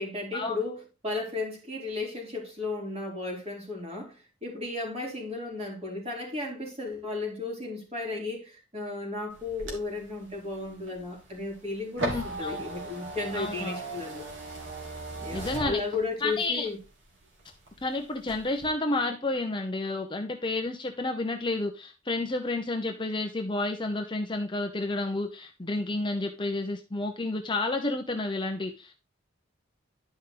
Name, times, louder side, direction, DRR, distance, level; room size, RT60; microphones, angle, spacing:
voice 1, 0.0-4.1 4.4-14.3 15.2-16.8, left 3 dB, 30° right, 3.6 m, -34 dB
sound 1, 9.3-16.4 16.8-17.8 18.2-18.7, right 2 dB, 65° right, 2.7 m, -38 dB
voice 2, 12.0-12.6 13.3-13.8 15.3-15.8 16.2-16.7 17.8-29.0, left 2 dB, 25° left, 0.9 m, -30 dB
11.0 x 5.3 x 3.9 m
head